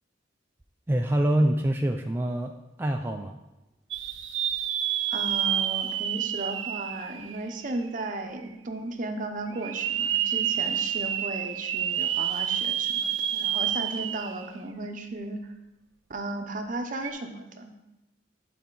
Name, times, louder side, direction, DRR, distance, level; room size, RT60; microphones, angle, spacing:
voice 1, 0.9-2.5 2.8-3.4, right 1 dB, 10° right, 3 dB, 0.3 m, -25 dB
sound 1, 3.9-7.9 8.4-8.5 9.6-14.5 14.9-15.0 16.9-17.1, right 10 dB, 90° right, 0.5 m, -29 dB
voice 2, 5.1-15.5 16.1-17.7, right 2 dB, 45° right, 5 dB, 0.7 m, -35 dB
11.5 x 4.2 x 3.9 m, 0.98 s
head